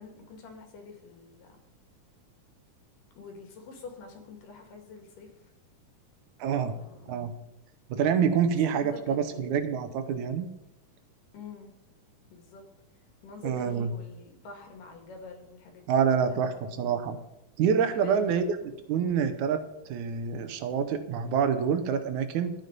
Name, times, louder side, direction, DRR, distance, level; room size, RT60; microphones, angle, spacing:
voice 1, 0.0-1.6 3.2-5.5 6.6-7.2 8.5-9.6 11.3-11.7 12.3-12.6 13.2-16.7 17.7-18.3 18.6-18.7, left 4 dB, 85° left, 4 dB, 3.7 m, -46 dB
voice 2, 6.4-6.8 7.1-7.3 7.9-10.5 13.4-13.9 15.9-17.2 17.6-18.5 18.9-19.6 19.9-22.5, right 7 dB, 75° right, 10 dB, 2.2 m, -26 dB
12.0 x 9.4 x 5.4 m, 0.87 s
omnidirectional pair, 3.7 m